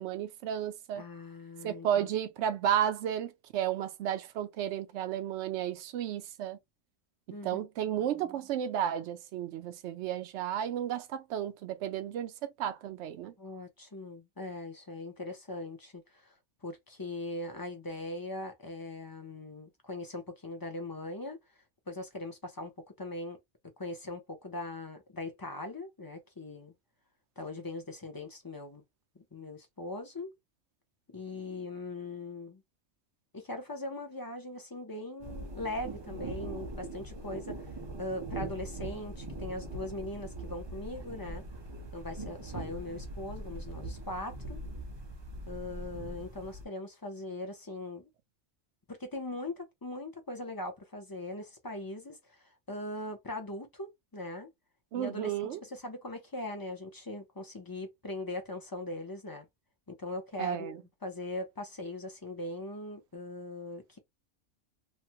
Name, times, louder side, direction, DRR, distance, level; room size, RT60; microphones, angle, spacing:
voice 1, 0.0-1.0 1.6-6.6 7.4-13.3 54.9-55.6 60.4-60.8, right 10 dB, 70° right, 0.8 m, -33 dB
voice 2, 0.9-2.1 7.3-7.7 8.0-8.4 13.4-16.4 16.6-21.4 21.9-22.7 23.0-23.4 23.8-26.7 27.4-28.8 29.1-30.3 31.1-32.6 33.3-41.4 41.9-44.6 45.5-48.1 48.9-54.5 54.9-59.5 59.9-60.8 61.0-64.0, left 2 dB, 25° left, 0.5 m, -40 dB
sound 1, 35.2-46.6, right 2 dB, 25° right, 0.6 m, -41 dB
3.1 x 2.2 x 2.8 m
omnidirectional pair, 1.3 m